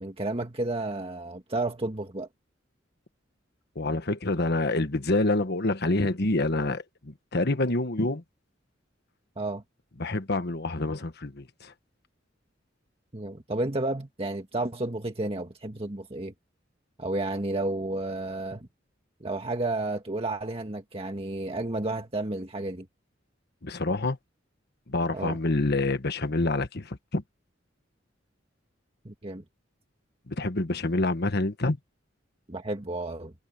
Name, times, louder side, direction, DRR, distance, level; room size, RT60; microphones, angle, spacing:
voice 1, 0.0-2.3 9.4-9.6 13.1-16.3 17.0-18.7 19.2-22.9 25.1-25.4 29.1-29.4 32.5-33.3, right 2 dB, 30° right, 1.7 m, -31 dB
voice 2, 3.7-8.2 10.0-11.7 23.6-24.2 24.9-27.2 30.3-31.8, left 2 dB, 55° left, 1.4 m, -27 dB
head